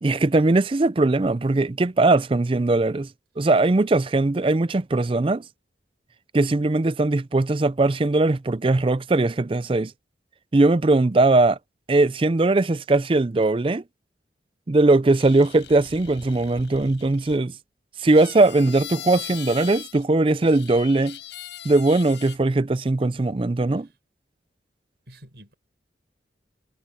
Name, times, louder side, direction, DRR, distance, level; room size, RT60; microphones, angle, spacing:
voice 1, 0.0-3.1 3.4-5.4 6.3-9.9 10.5-11.6 11.9-13.8 14.7-17.5 18.0-21.2 21.6-23.9, right 2 dB, 30° right, 0.5 m, -20 dB
sound 1, 15.1-17.4 18.0-20.0 20.4-22.4, left 10 dB, 85° left, 5.9 m, -40 dB
voice 2, 25.1-25.5, right 1 dB, 65° right, 5.9 m, -49 dB
head